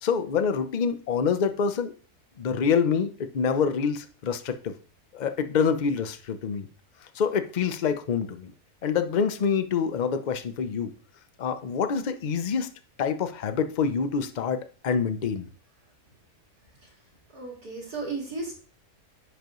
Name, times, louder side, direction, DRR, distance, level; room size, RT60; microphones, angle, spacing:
voice 1, 0.0-1.9 2.4-4.7 5.1-6.7 7.2-8.5 8.8-10.9 11.4-12.7 13.0-15.5, left 6 dB, 55° left, 9 dB, 0.5 m, -26 dB
voice 2, 17.3-18.5, right 3 dB, 80° right, -2 dB, 2.6 m, -34 dB
9.9 x 5.0 x 3.1 m, 0.39 s
omnidirectional pair, 1.6 m